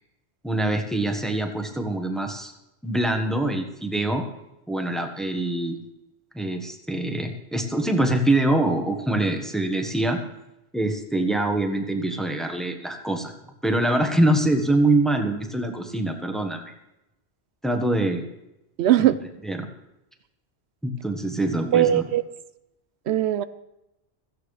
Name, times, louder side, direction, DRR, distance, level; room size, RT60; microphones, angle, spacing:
voice 1, 0.4-2.5 2.8-4.2 4.7-5.8 6.3-10.2 10.7-13.3 13.6-16.6 17.6-18.2 19.4-19.7 20.8-22.0, right 1 dB, ahead, 4 dB, 1.3 m, -24 dB
voice 2, 18.8-19.2 21.7-22.2 23.1-23.4, right 12 dB, 85° right, 13 dB, 0.9 m, -19 dB
16.5 x 14.0 x 3.3 m, 0.91 s
omnidirectional pair, 1.1 m